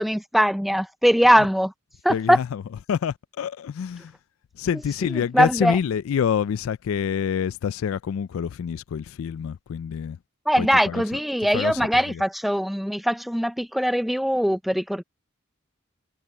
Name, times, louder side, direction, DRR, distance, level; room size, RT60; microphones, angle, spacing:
voice 1, 0.0-1.7 2.0-2.4 5.1-5.8 10.5-15.0, equal, ahead, 0.4 m, -21 dB
voice 2, 2.1-2.6 2.9-4.1 4.6-10.2 10.6-11.0 11.5-12.2, left 7 dB, 75° left, 0.3 m, -27 dB
head